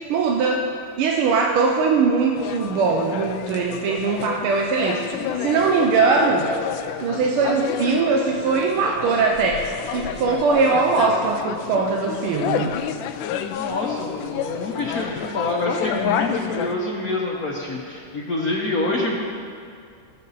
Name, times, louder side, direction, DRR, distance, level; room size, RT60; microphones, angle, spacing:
voice 1, 0.1-0.7 1.0-6.5 7.0-12.7, right 4 dB, 85° right, 0 dB, 1.7 m, -21 dB
sound 1, 2.4-16.8, left 8 dB, 75° left, 1.2 m, -29 dB
voice 2, 13.5-19.2, left 2 dB, 55° left, -3 dB, 1.3 m, -26 dB
17.0 x 6.7 x 4.1 m, 2.3 s
omnidirectional pair, 2.3 m